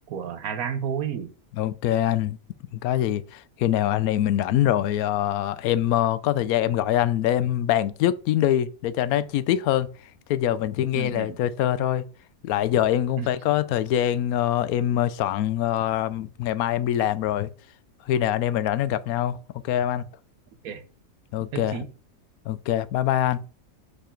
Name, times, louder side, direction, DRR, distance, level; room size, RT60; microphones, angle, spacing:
voice 1, 0.1-1.3 10.9-11.4 13.2-13.3 20.6-20.9 21.5-21.9, right 8 dB, 80° right, 1.3 m, -31 dB
voice 2, 1.6-2.4 2.7-9.9 10.3-12.0 12.4-17.5 18.1-19.4 19.6-20.1 21.3-21.8 22.5-23.4, left 11 dB, 85° left, 1.1 m, -24 dB
6.9 x 4.8 x 4.4 m
omnidirectional pair, 1.5 m